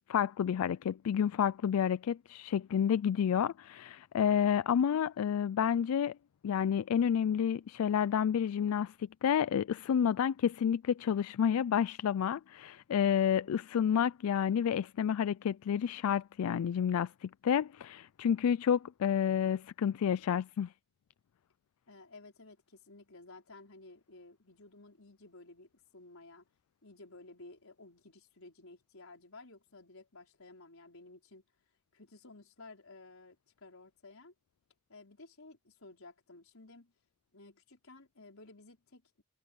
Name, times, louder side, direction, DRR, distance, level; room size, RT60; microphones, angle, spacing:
voice 1, 0.1-6.2 6.4-20.7, left 8 dB, 90° left, 0.3 m, -30 dB
voice 2, 21.9-26.5 26.8-31.4 31.9-34.3 34.9-36.9 37.3-39.2, left 2 dB, 75° left, 5.2 m, -54 dB
head